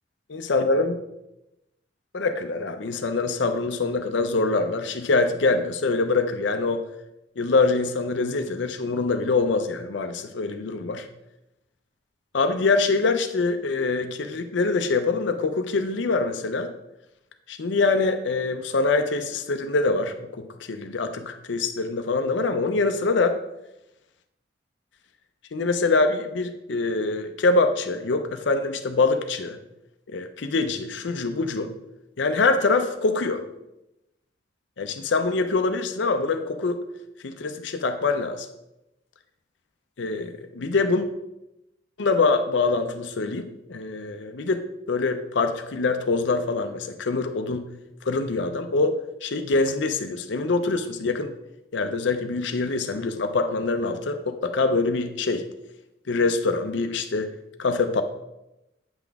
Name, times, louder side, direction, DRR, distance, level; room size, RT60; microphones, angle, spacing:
voice 1, 0.3-1.0 2.1-6.8 7.4-11.1 12.3-16.7 17.5-23.4 25.5-29.6 30.1-31.7 32.2-33.4 34.8-36.8 37.2-38.5 40.0-41.1 42.0-47.7 48.0-48.9 49.2-51.3 51.7-55.4 56.1-57.3 57.6-58.0, left 3 dB, 70° left, 7 dB, 0.6 m, -24 dB
8.8 x 5.9 x 3.5 m, 0.91 s
head